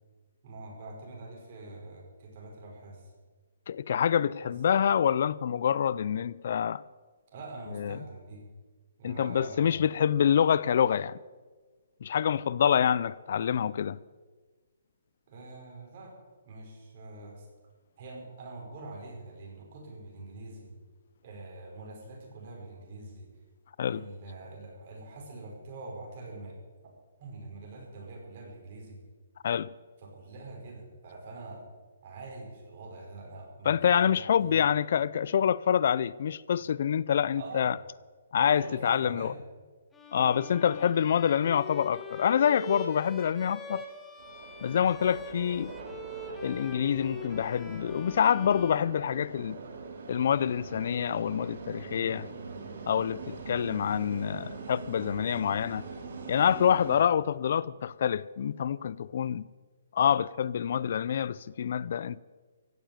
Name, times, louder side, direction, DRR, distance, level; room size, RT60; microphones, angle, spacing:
voice 1, 0.4-3.1 4.4-4.5 7.3-8.4 9.0-9.9 12.6-12.8 15.3-16.1 16.4-17.5 18.0-20.7 21.2-23.3 23.9-26.6 27.2-29.0 30.0-31.7 32.0-34.7 37.3-37.7 38.3-39.4 52.0-52.2, right 2 dB, 45° right, 5.4 m, -44 dB
voice 2, 3.7-6.8 7.8-8.0 9.0-11.2 12.0-14.0 23.8-24.1 29.4-29.7 33.7-37.8 38.3-39.3 40.1-43.8 44.6-45.7 46.4-49.6 50.1-52.3 52.9-55.8 56.3-59.4 59.9-62.2, left 8 dB, 55° left, 0.4 m, -26 dB
Bowed string instrument, 39.9-49.6, left 3 dB, 10° left, 1.7 m, -43 dB
sound 1, 44.2-57.0, right 4 dB, 60° right, 2.9 m, -43 dB
16.0 x 7.3 x 9.2 m
hypercardioid pair, 160°, 0 cm